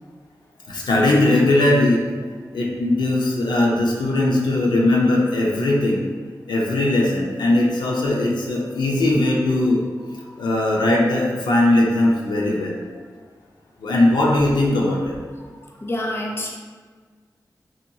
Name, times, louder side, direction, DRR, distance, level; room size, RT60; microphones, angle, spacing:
voice 1, 0.7-2.1 2.5-6.1 6.5-9.8 10.4-12.8 13.8-15.2, left 1 dB, 85° left, -3 dB, 0.4 m, -19 dB
voice 2, 15.4-16.6, left 1 dB, 30° left, -1 dB, 0.5 m, -29 dB
2.7 x 2.2 x 2.7 m, 1.5 s
cardioid pair, 50°, 8 cm